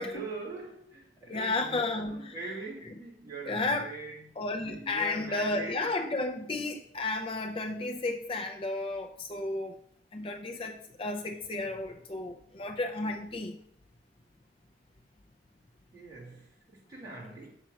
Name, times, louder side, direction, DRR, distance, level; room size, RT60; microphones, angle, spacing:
voice 1, 0.0-4.3 4.6-5.8 15.9-17.5, right 3 dB, 20° right, -6 dB, 2.3 m, -42 dB
voice 2, 1.3-2.3 3.5-3.9 4.4-9.8 10.1-13.6, left 2 dB, 30° left, 4 dB, 0.4 m, -33 dB
6.7 x 4.4 x 6.3 m, 0.71 s
head